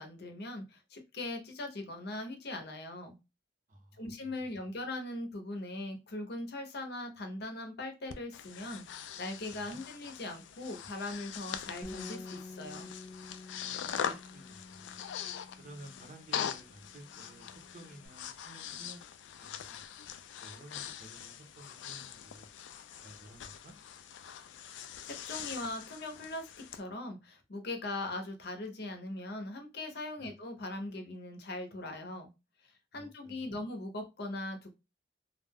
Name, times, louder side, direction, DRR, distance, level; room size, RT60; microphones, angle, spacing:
voice 1, 0.0-3.2 4.0-12.9 25.0-32.3 32.6-34.7, left 2 dB, 60° left, 0.7 m, -40 dB
voice 2, 3.7-4.5 9.5-9.8 13.6-15.0 15.6-19.0 19.4-19.8 20.4-22.5 23.0-23.7 30.2-30.4 32.9-33.6, right 1 dB, 45° right, 0.7 m, -54 dB
Breathing, 8.1-26.8, left 8 dB, 85° left, 0.3 m, -43 dB
Bass guitar, 11.8-18.1, left 2 dB, 10° left, 0.5 m, -50 dB
2.4 x 2.1 x 3.4 m
head